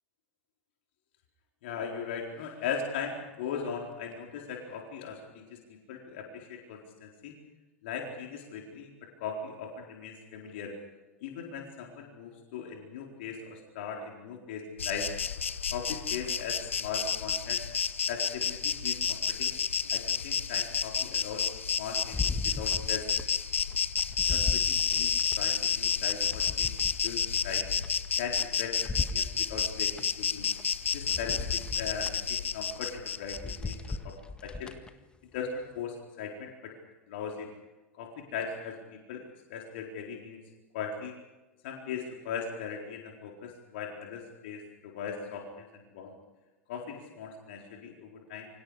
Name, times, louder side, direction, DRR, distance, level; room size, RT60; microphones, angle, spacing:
voice 1, 1.6-5.6 5.9-7.3 7.8-8.9 9.2-10.7 11.2-15.1 15.7-17.6 18.1-19.5 19.9-21.4 21.8-23.1 24.2-27.7 28.2-30.5 30.9-33.7 34.0-34.2 34.4-34.7 35.3-36.7 37.1-37.5 38.0-39.2 39.5-40.4 40.7-41.1 41.6-46.1 46.7-48.5, left 6 dB, 60° left, 0 dB, 4.3 m, -39 dB
Insect, 14.8-34.0, left 7 dB, 75° left, 0.9 m, -31 dB
sound 1, 22.1-23.3 23.7-25.4 25.9-28.5 28.8-30.0 30.6-30.7 31.1-32.2 32.6-32.8 33.2-34.9 35.4-35.5, left 3 dB, 15° left, 1.8 m, -37 dB
29.0 x 25.5 x 5.0 m, 1.1 s
figure-of-eight pair, 80°, 7 cm